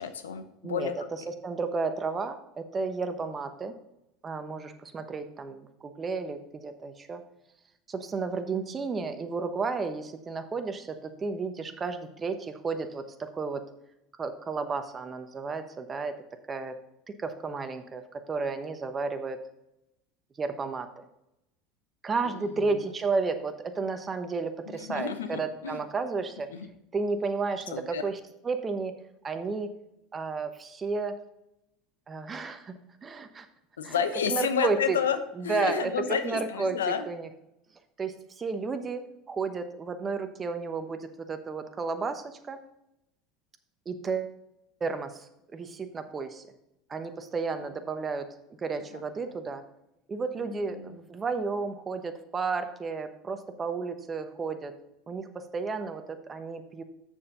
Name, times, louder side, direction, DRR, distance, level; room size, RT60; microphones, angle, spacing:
voice 1, 0.0-0.9 22.2-22.9 24.6-25.8 26.5-26.7 27.7-28.0 33.8-37.0 47.6-47.7 48.9-49.3 50.4-51.0, left 7 dB, 85° left, 9 dB, 0.8 m, -31 dB
voice 2, 0.6-3.7 4.2-7.2 7.9-13.6 14.2-16.2 16.5-16.8 17.1-19.4 20.4-21.0 22.0-26.5 26.9-28.2 28.4-28.9 29.2-29.7 30.1-31.1 32.1-32.7 33.0-33.5 33.8-34.0 34.3-35.0 35.4-35.9 36.2-37.3 38.0-42.6 43.9-44.4 44.8-46.4 46.9-48.3 48.6-49.6 50.1-54.7 55.1-56.8, right 4 dB, 30° right, 8 dB, 1.0 m, -32 dB
7.4 x 6.9 x 3.8 m, 0.86 s
hypercardioid pair, 80°, 0 cm